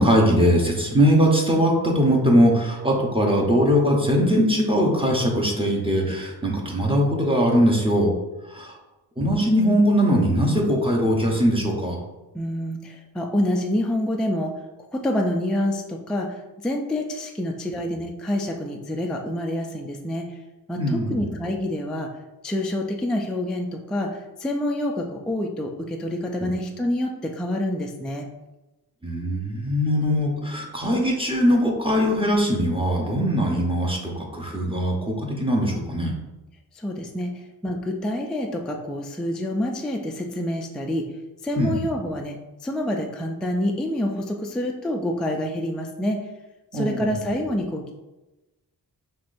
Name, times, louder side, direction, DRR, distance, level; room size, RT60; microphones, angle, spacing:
voice 1, 0.0-8.1 8.5-8.7 9.2-12.0 20.8-21.3 26.4-26.5 29.0-34.9 35.4-36.1 41.6-41.8 46.7-47.1, equal, 15° right, -1 dB, 0.9 m, -21 dB
voice 2, 12.3-14.6 14.9-20.3 20.7-22.1 22.4-28.3 36.8-41.1 41.4-42.4 42.6-46.2 46.7-47.9, left 1 dB, ahead, 1 dB, 0.3 m, -27 dB
5.8 x 3.1 x 2.6 m, 1.0 s
wide cardioid pair, 115°, 40 cm